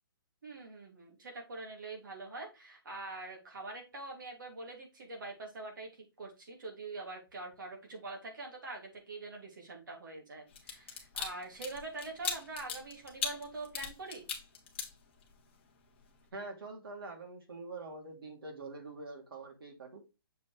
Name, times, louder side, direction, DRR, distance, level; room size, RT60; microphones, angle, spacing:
voice 1, 0.4-5.9 6.2-14.3, right 2 dB, 55° right, 3.1 m, -44 dB
sound 1, 10.5-15.5 15.9-16.1, left 6 dB, 30° left, 1.2 m, -39 dB
voice 2, 16.3-20.0, right 3 dB, 75° right, 2.8 m, -45 dB
6.7 x 5.0 x 3.4 m
hypercardioid pair, 180°, 12 cm